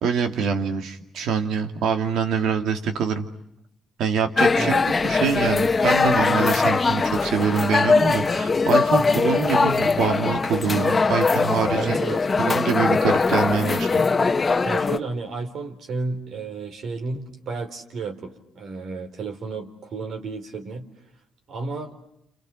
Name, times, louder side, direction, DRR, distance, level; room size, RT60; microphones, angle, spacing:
voice 1, 0.0-3.3 4.0-4.8 5.0-12.0 12.4-14.0, right 6 dB, 80° right, 6 dB, 2.6 m, -25 dB
sound 1, 4.4-15.0, left 4 dB, 30° left, 1.3 m, -21 dB
voice 2, 4.6-4.9 11.7-12.2 14.6-20.8 21.5-21.9, right 4 dB, 65° right, 4 dB, 4.2 m, -32 dB
29.5 x 29.0 x 6.5 m, 0.78 s
cardioid pair, 90°, 0 cm